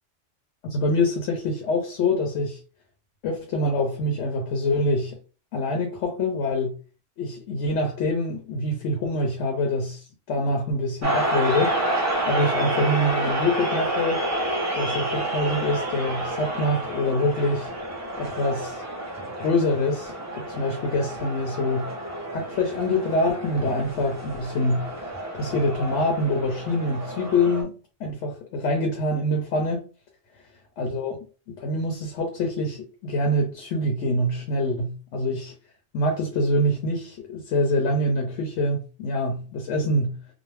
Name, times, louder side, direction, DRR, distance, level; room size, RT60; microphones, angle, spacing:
voice 1, 0.7-2.6 3.2-5.2 5.5-6.8 7.2-14.2 14.7-17.7 18.2-18.8 19.4-21.9 22.3-24.9 25.3-27.7 28.0-29.8 30.8-31.2 31.5-35.5 35.9-40.2, left 1 dB, 75° left, 0.9 m, -25 dB
sound 1, 11.0-27.6, right 1 dB, 25° right, 0.3 m, -29 dB
2.5 x 2.0 x 3.1 m
omnidirectional pair, 1.3 m